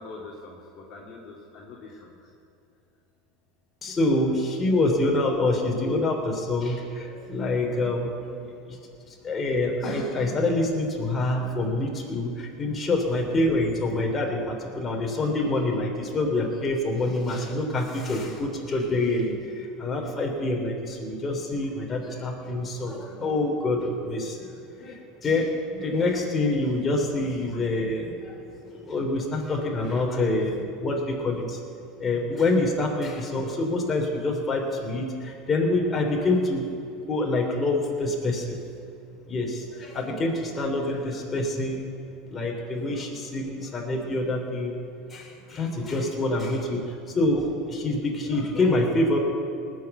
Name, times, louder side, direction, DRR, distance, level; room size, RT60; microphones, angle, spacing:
voice 1, 0.0-2.3 17.3-17.5 24.1-24.6 29.8-30.0 40.7-40.9 45.5-45.6, left 3 dB, 45° left, -3 dB, 2.4 m, -44 dB
voice 2, 3.8-8.4 8.7-8.8 9.0-24.4 24.8-31.6 32.0-36.7 37.1-38.6 39.3-41.9 42.3-49.2, left 2 dB, 25° left, 0 dB, 3.3 m, -26 dB
19.5 x 6.7 x 8.2 m, 2.6 s
hypercardioid pair, 95°, 0 cm